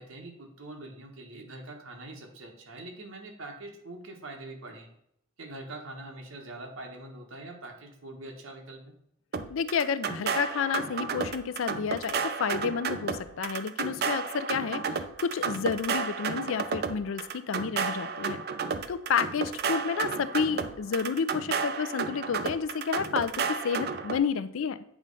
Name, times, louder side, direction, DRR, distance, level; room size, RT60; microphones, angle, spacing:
voice 1, 0.0-4.9 5.4-9.0, right 2 dB, 70° right, 2 dB, 1.4 m, -43 dB
sound 1, 9.3-24.2, right 5 dB, 50° right, 0.5 m, -32 dB
voice 2, 9.5-14.8 15.2-18.4 18.9-24.8, left 6 dB, 70° left, 14 dB, 0.4 m, -30 dB
8.9 x 3.1 x 5.4 m, 0.75 s
head